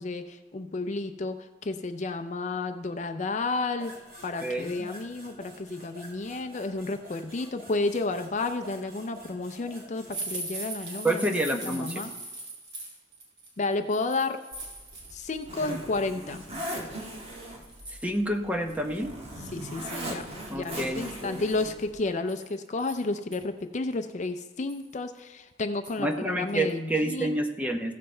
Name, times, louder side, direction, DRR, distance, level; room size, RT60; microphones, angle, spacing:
voice 1, 0.0-3.9 4.2-11.2 11.6-12.1 13.6-14.4 15.1-16.4 19.5-27.4, left 3 dB, 40° left, 8 dB, 0.5 m, -31 dB
sound 1, 3.8-11.0, equal, 55° right, 2.7 m, -49 dB
voice 2, 4.4-4.9 11.0-12.0 18.0-19.1 20.5-21.4 26.0-27.9, right 1 dB, 10° right, 3 dB, 0.8 m, -28 dB
sound 2, 10.1-15.5 15.8-16.4 17.0-17.1 17.4-18.2 18.7-18.8 19.0-19.1 19.6-20.3 21.3-23.4 23.9-24.0 24.4-24.9 25.8-26.1 26.5-26.7 27.1-27.2, right 2 dB, 80° right, 4.7 m, -41 dB
Zipper (clothing), 14.5-21.9, equal, 35° right, 1.7 m, -39 dB
15.0 x 7.5 x 4.4 m, 1.2 s
head